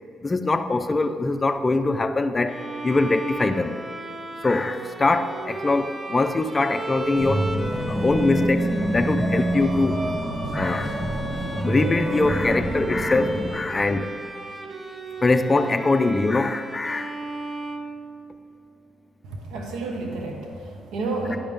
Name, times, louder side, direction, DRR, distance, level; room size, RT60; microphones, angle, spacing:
voice 1, 0.2-3.8 4.4-7.5 7.9-10.0 10.5-11.0 11.6-14.1 15.2-17.2 21.3-21.4, left 3 dB, 25° left, 9 dB, 0.4 m, -23 dB
Bowed string instrument, 2.5-18.5, right 2 dB, 20° right, 0.6 m, -35 dB
sound 1, 7.2-13.5, right 1 dB, 55° right, 1.7 m, -26 dB
voice 2, 19.5-21.4, right 3 dB, 90° right, 2 dB, 0.9 m, -30 dB
10.5 x 5.1 x 3.6 m, 2.4 s
cardioid pair, 90°, 0 cm